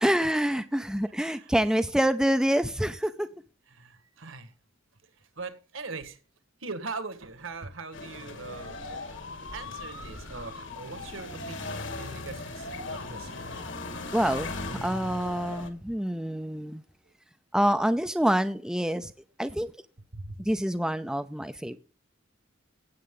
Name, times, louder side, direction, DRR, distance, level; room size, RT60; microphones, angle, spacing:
voice 1, 0.0-3.3 14.1-16.8 17.5-19.1 19.4-19.7 20.4-21.8, equal, 5° right, 10 dB, 0.5 m, -26 dB
voice 2, 1.2-1.5 3.7-4.5 5.2-6.2 6.6-8.8 9.5-13.5 20.1-20.4, right 3 dB, 70° right, 11 dB, 1.7 m, -41 dB
sound 1, 7.9-15.7, left 2 dB, 60° left, 2.0 m, -38 dB
16.0 x 8.6 x 3.8 m, 0.35 s
head